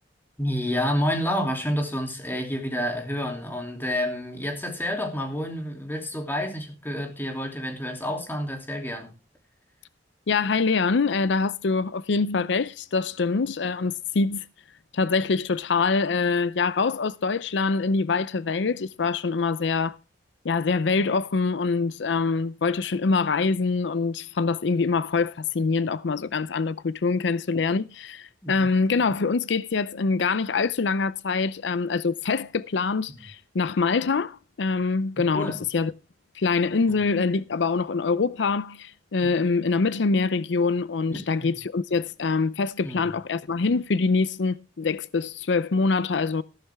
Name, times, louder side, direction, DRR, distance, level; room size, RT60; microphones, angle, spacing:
voice 1, 0.4-9.1 28.4-28.7 33.1-33.2 35.3-35.6 39.2-39.3 41.1-41.5 42.8-43.0, equal, 10° left, 2.9 m, -29 dB
voice 2, 10.3-14.5 14.9-20.0 20.4-35.9 36.3-46.4, left 4 dB, 80° left, 0.5 m, -24 dB
14.5 x 12.0 x 3.5 m
head